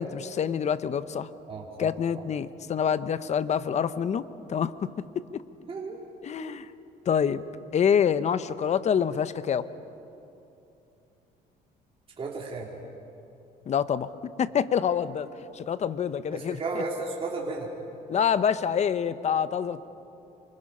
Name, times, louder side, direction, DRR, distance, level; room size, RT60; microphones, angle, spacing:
voice 1, 0.0-1.3 1.8-4.2 4.5-4.9 5.3-5.4 6.2-6.7 7.1-7.4 7.7-9.7 13.7-14.1 14.4-15.3 15.5-16.8 18.1-19.9, left 8 dB, 40° left, 14 dB, 0.8 m, -26 dB
voice 2, 1.5-1.9 5.6-6.0 6.4-6.6 12.2-12.7 16.3-17.7, right 3 dB, 35° right, -2 dB, 2.9 m, -34 dB
27.5 x 24.5 x 5.5 m, 2.8 s
cardioid pair, 110°, 17 cm